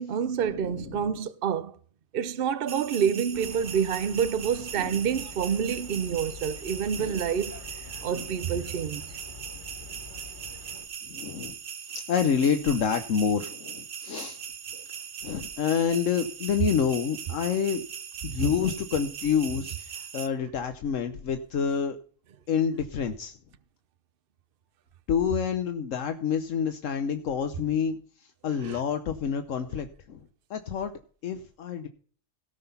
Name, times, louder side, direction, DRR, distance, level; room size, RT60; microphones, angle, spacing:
voice 1, 0.0-1.7 2.1-7.5 8.0-9.1 28.6-28.8, right 7 dB, 50° right, 0.9 m, -28 dB
voice 2, 0.5-1.1 4.8-5.0 7.0-7.2 8.1-8.3 11.1-11.6 11.8-14.4 15.2-17.8 18.2-22.0 22.5-23.3 25.1-30.2 30.5-30.9 31.2-31.9, left 7 dB, 80° left, 1.3 m, -28 dB
sound 1, 2.7-20.3, right 7 dB, 70° right, 1.3 m, -40 dB
sound 2, 3.3-10.9, left 4 dB, 40° left, 1.7 m, -46 dB
17.5 x 5.9 x 5.6 m
omnidirectional pair, 1.3 m